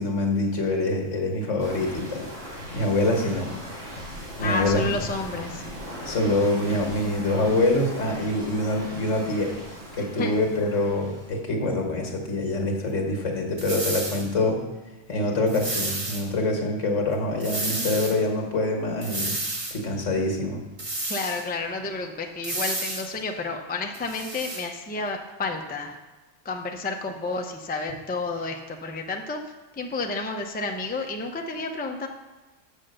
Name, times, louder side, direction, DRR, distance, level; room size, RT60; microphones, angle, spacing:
voice 1, 0.0-2.3 2.7-3.5 4.4-4.9 6.0-9.5 9.9-14.6 15.1-19.3 19.7-20.6, left 2 dB, 80° left, 1 dB, 1.8 m, -25 dB
sound 1, 1.6-11.3, equal, 85° right, 3.2 m, -38 dB
voice 2, 4.4-5.6 10.0-10.3 21.0-26.0 26.4-29.4 29.8-32.1, left 3 dB, 10° left, 3 dB, 0.4 m, -31 dB
sound 2, 13.6-14.3 15.5-16.2 17.4-18.2 19.0-19.8 20.8-21.5 22.4-23.1 23.9-24.6, right 2 dB, 30° right, 1.0 m, -31 dB
6.7 x 6.4 x 6.4 m, 1.2 s
omnidirectional pair, 1.3 m